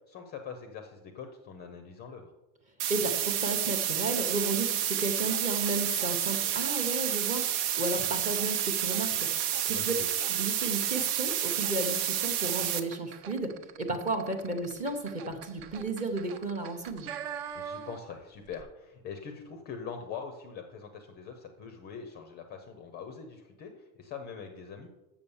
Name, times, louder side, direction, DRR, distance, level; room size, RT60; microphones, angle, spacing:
voice 1, 0.1-2.3 9.7-10.1 17.5-24.9, left 6 dB, 25° left, 6 dB, 0.5 m, -43 dB
sound 1, 2.8-12.8, right 10 dB, 75° right, 1.0 m, -30 dB
voice 2, 2.9-9.9 10.3-17.1, right 2 dB, 15° right, 6 dB, 0.7 m, -33 dB
sound 2, 4.4-18.2 18.4-18.6, right 8 dB, 50° right, 0.8 m, -45 dB
7.2 x 6.8 x 7.0 m, 1.0 s
cardioid pair, 175°, 45 cm